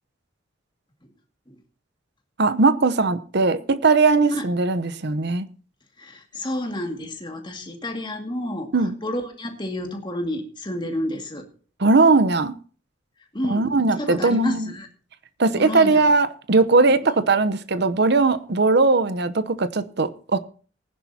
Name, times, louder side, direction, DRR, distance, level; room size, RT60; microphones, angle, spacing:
voice 1, 2.4-5.5 8.7-9.0 11.8-12.5 13.4-14.7 15.4-20.4, right 3 dB, 60° right, 0.8 m, -19 dB
voice 2, 6.0-8.7 9.0-11.5 13.3-13.7 14.0-14.9 15.6-16.0 16.9-17.0, left 1 dB, 25° left, 2.1 m, -30 dB
19.5 x 10.5 x 2.8 m
head